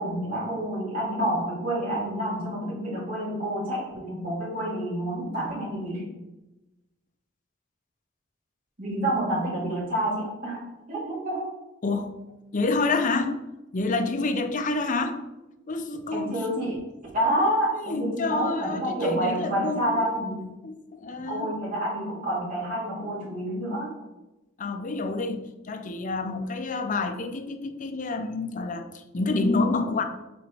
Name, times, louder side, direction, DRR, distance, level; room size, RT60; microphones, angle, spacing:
voice 1, 0.0-6.0 8.8-10.6 10.9-11.5 16.1-16.7 17.1-20.4 21.2-23.9, right 1 dB, 45° right, -6 dB, 2.4 m, -28 dB
voice 2, 12.5-13.4 13.7-15.2 15.7-16.4 17.8-20.0 20.6-21.5 24.6-30.0, left 3 dB, 45° left, 6 dB, 0.6 m, -28 dB
6.1 x 4.0 x 4.7 m, 1.0 s
head